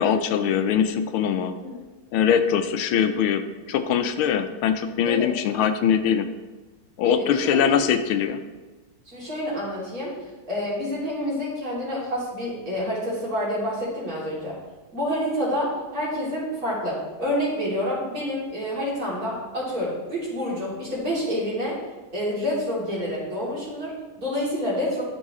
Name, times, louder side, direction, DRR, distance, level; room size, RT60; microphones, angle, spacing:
voice 1, 0.0-1.5 2.1-6.3 7.0-8.4, left 8 dB, 80° left, 9 dB, 1.4 m, -22 dB
voice 2, 7.1-7.8 9.1-10.1 10.5-14.6 14.9-21.8 22.1-25.0, equal, 40° right, -7 dB, 3.5 m, -28 dB
13.0 x 6.2 x 3.1 m, 1.2 s
omnidirectional pair, 2.4 m